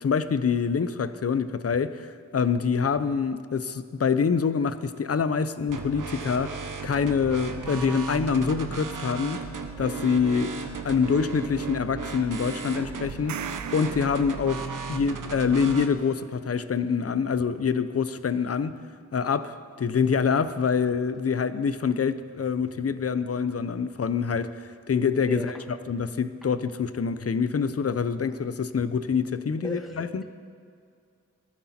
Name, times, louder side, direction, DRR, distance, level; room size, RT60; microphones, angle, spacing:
voice 1, 0.0-6.6 6.8-9.4 9.8-10.5 10.8-13.4 13.7-18.8 19.1-25.5 25.9-30.2, left 6 dB, 50° left, 13 dB, 0.6 m, -26 dB
sound 1, 5.7-15.9, right 5 dB, 80° right, 1.0 m, -35 dB
sound 2, 13.1-15.1, right 9 dB, 65° right, 0.5 m, -40 dB
voice 2, 25.3-25.6 29.6-30.2, equal, ahead, 2 dB, 1.5 m, -35 dB
19.0 x 13.5 x 4.3 m, 2.2 s
wide cardioid pair, 100°, 31 cm